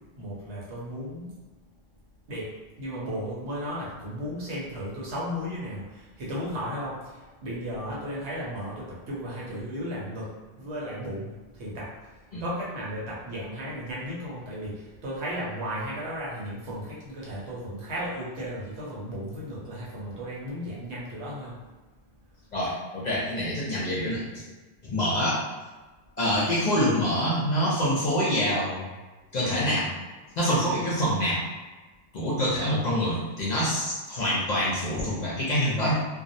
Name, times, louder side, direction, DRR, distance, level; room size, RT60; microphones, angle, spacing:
voice 1, 0.2-1.3 2.3-2.5 2.8-11.9 12.4-21.6, equal, 75° right, -6 dB, 1.1 m, -35 dB
voice 2, 22.5-24.4 24.8-25.4 26.2-28.9 29.3-29.9 30.4-31.4 32.1-35.9, equal, 50° left, -7 dB, 0.6 m, -26 dB
2.5 x 2.0 x 2.6 m, 1.3 s
omnidirectional pair, 1.1 m